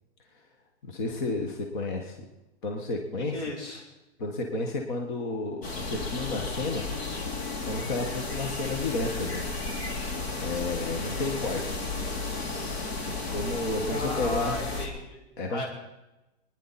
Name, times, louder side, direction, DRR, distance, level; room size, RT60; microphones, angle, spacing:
voice 1, 0.8-2.2 2.6-3.4 4.2-6.8 7.6-9.4 10.3-11.8 13.3-14.5 15.4-15.6, left 2 dB, 45° left, 2 dB, 1.6 m, -31 dB
voice 2, 3.2-3.8 13.9-15.2 15.5-15.7, left 2 dB, 85° left, -1 dB, 5.9 m, -35 dB
sound 1, 5.6-14.9, left 3 dB, 65° left, 2.9 m, -33 dB
22.5 x 10.5 x 4.3 m, 0.98 s
hypercardioid pair, 160°, 34 cm